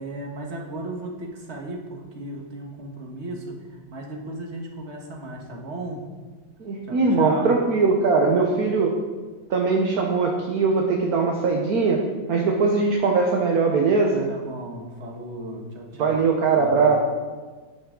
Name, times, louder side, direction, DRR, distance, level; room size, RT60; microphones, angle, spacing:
voice 1, 0.0-6.0 6.9-7.5 8.3-8.5 14.3-17.0, right 1 dB, 35° right, 0 dB, 1.7 m, -36 dB
voice 2, 6.6-8.9 9.5-12.0 12.3-14.3 16.0-17.0, right 4 dB, 55° right, 0 dB, 1.3 m, -21 dB
11.0 x 10.5 x 3.8 m, 1.4 s
omnidirectional pair, 2.3 m